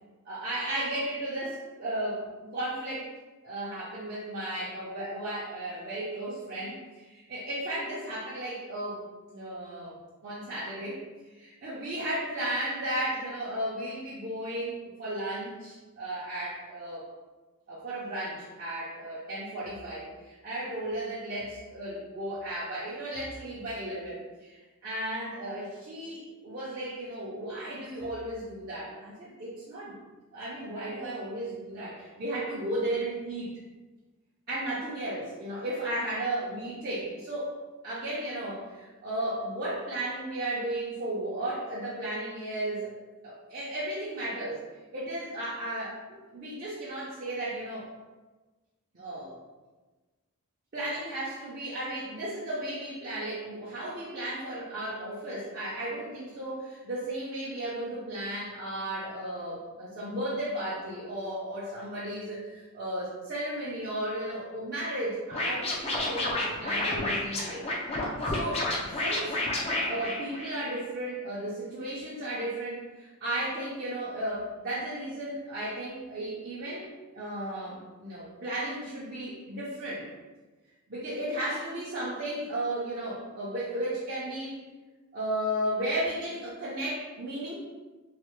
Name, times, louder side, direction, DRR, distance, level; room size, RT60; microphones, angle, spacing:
voice 1, 0.2-3.1 3.4-9.0 9.3-10.0 10.2-11.0 11.3-17.0 17.7-30.0 30.3-33.5 34.5-37.5 37.8-42.9 43.2-44.6 44.9-47.9 48.9-49.3 50.7-67.6 68.2-68.7 69.0-69.4 69.9-76.9 77.1-80.1 80.9-84.6 85.1-87.5, right 1 dB, 40° right, -9 dB, 0.6 m, -34 dB
Scratching (performance technique), 65.3-70.8, left 2 dB, 25° left, 0.4 m, -30 dB
3.2 x 2.1 x 3.0 m, 1.2 s
head